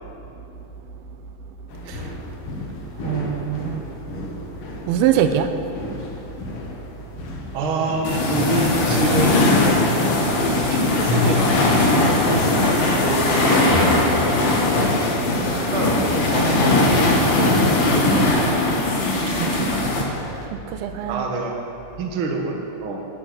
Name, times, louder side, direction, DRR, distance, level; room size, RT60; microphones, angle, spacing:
sound 1, 1.7-20.5, left 2 dB, 55° left, 1.7 m, -30 dB
voice 1, 3.0-3.8 4.9-5.5 19.3-19.7 20.5-21.3, right 9 dB, 90° right, 8 dB, 2.7 m, -23 dB
voice 2, 7.5-10.0 10.7-14.3 14.7-15.0 15.6-18.4 21.1-21.6 22.0-23.0, right 3 dB, 45° right, 1 dB, 1.8 m, -26 dB
sound 2, 8.0-20.0, left 2 dB, 70° left, 4.0 m, -20 dB
17.0 x 11.0 x 6.2 m, 2.9 s
omnidirectional pair, 4.3 m